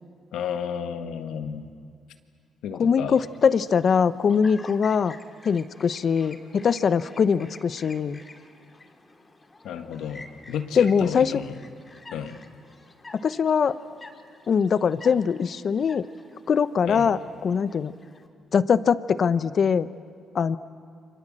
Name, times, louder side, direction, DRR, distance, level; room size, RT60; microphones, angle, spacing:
voice 1, 0.3-1.7 2.6-3.2 9.6-11.5 12.1-12.4 16.9-17.1, left 8 dB, 85° left, 6 dB, 1.7 m, -32 dB
voice 2, 2.8-5.2 5.4-8.2 10.8-11.4 13.1-13.8 14.5-16.1 16.5-17.9 18.5-19.9 20.3-20.6, left 6 dB, 50° left, 14 dB, 0.8 m, -22 dB
Chirp tweet, 3.1-18.3, left 2 dB, 25° left, 2.6 m, -49 dB
29.5 x 25.5 x 7.6 m, 2.1 s
cardioid pair, 90°, 0 cm